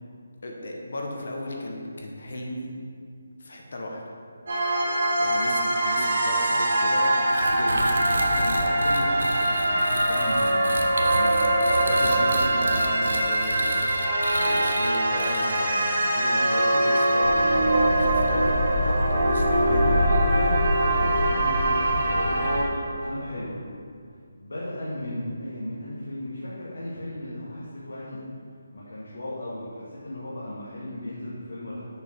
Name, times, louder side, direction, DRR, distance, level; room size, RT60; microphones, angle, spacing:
voice 1, 0.4-2.7 3.4-4.0 5.2-8.0 11.8-13.8 14.3-18.6 18.8-19.8, left 1 dB, 50° left, 0 dB, 1.0 m, -35 dB
sound 1, 4.5-22.6, right 1 dB, 40° right, 2.0 m, -23 dB
sound 2, 7.3-15.8, right 1 dB, 85° right, 0.9 m, -33 dB
voice 2, 8.1-11.4 12.0-12.6 19.5-23.6 24.3-28.2 28.7-31.9, left 1 dB, 90° left, -8 dB, 1.8 m, -35 dB
sound 3, 17.2-22.7, left 1 dB, 30° left, 0.7 m, -27 dB
6.7 x 4.8 x 5.2 m, 2.2 s
hypercardioid pair, 175°, 0 cm